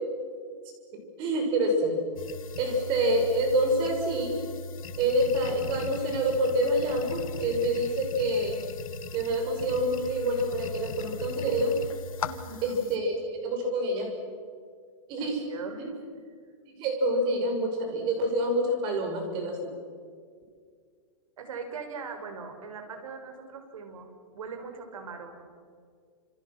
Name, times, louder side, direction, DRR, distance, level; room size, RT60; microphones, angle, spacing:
voice 1, 0.9-2.0 2.6-4.4 5.0-8.6 9.1-11.8 12.6-13.2 13.4-14.1 15.1-15.4 15.8-15.9 16.8-19.7, right 1 dB, 30° right, 3 dB, 6.3 m, -27 dB
sound 1, 2.2-13.0, left 4 dB, 85° left, 1.7 m, -39 dB
voice 2, 12.2-13.0 15.2-16.0 21.4-25.4, right 5 dB, 80° right, 5 dB, 6.4 m, -41 dB
29.5 x 28.0 x 6.2 m, 2.1 s
supercardioid pair, 170°, 17 cm